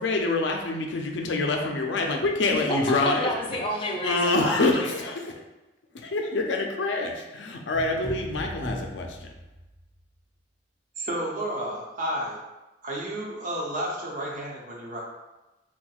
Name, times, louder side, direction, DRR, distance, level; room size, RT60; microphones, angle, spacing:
voice 1, 0.0-3.3 4.0-5.2 6.0-9.2, left 2 dB, 90° left, 2 dB, 0.5 m, -26 dB
voice 2, 2.5-3.0 3.2-5.1, left 1 dB, 30° left, -2 dB, 0.5 m, -30 dB
sound 1, 7.7-10.0, equal, 15° left, 1.5 m, -38 dB
voice 3, 11.0-12.4 12.8-15.0, right 1 dB, 50° right, -4 dB, 0.8 m, -31 dB
4.2 x 2.1 x 2.3 m, 1.0 s
head